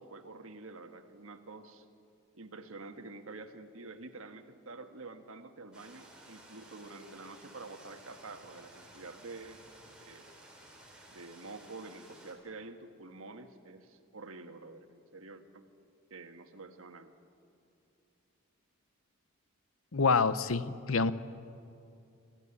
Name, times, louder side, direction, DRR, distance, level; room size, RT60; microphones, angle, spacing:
voice 1, 0.0-1.9 2.3-9.6 10.1-10.3 11.1-15.7 16.1-17.1, right 3 dB, 65° right, 7 dB, 1.5 m, -48 dB
sound 1, 5.7-12.3, right 1 dB, 5° right, 3.4 m, -55 dB
voice 2, 19.9-21.1, left 4 dB, 65° left, 14 dB, 0.8 m, -27 dB
27.0 x 13.5 x 9.9 m, 2.6 s
head